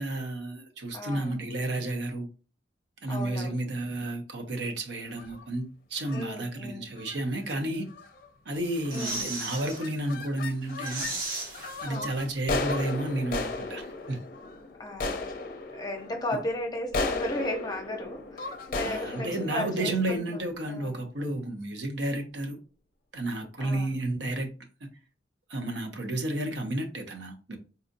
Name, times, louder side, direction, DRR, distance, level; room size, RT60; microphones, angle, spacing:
voice 1, 0.0-2.3 3.0-7.9 8.5-11.1 11.8-14.2 18.8-22.6 23.1-24.5 25.5-27.6, right 1 dB, 75° right, 0.7 m, -31 dB
voice 2, 0.9-1.4 3.1-3.7 6.1-6.9 8.9-9.3 11.8-12.1 14.8-15.2 15.7-20.2 20.7-21.0 23.6-23.9, left 1 dB, 25° left, 0.8 m, -35 dB
sound 1, 5.1-5.5 6.0-6.3 7.0-7.2 7.5-7.6 7.9-8.3 8.8-9.2 9.5-11.2 11.5-20.7, left 3 dB, 55° left, 0.5 m, -35 dB
sound 2, 8.5-9.8 10.2-10.3 10.6-12.4 12.6-12.7, right 2 dB, 55° right, 1.3 m, -36 dB
4.0 x 2.6 x 2.5 m
head